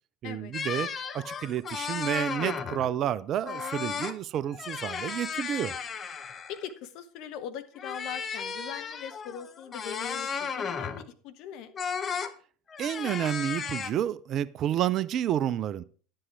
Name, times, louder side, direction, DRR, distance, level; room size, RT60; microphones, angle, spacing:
voice 1, 0.2-0.9 1.1-5.7 12.8-15.8, right 10 dB, 40° right, 19 dB, 0.5 m, -30 dB
sound 1, 0.5-2.9 3.4-4.2 4.5-6.7 7.8-11.1 11.7-12.3 12.7-13.9, left 6 dB, 30° left, 0.9 m, -35 dB
voice 2, 6.5-11.7, left 8 dB, 50° left, 9 dB, 1.1 m, -41 dB
11.0 x 7.7 x 4.7 m, 0.41 s
figure-of-eight pair, 75°, 0 cm